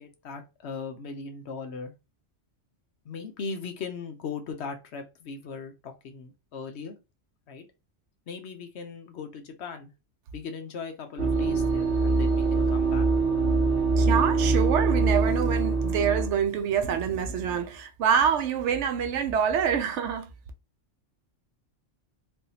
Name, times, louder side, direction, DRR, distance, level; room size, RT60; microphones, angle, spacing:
voice 1, 0.0-1.9 3.0-7.0 7.5-7.7 8.3-9.9 10.3-13.1, left 5 dB, 65° left, 0.9 m, -38 dB
sound 1, 11.2-16.3, right 3 dB, 55° right, 1.1 m, -23 dB
voice 2, 14.0-20.3, right 7 dB, 75° right, 0.9 m, -26 dB
3.4 x 2.6 x 2.8 m
omnidirectional pair, 1.3 m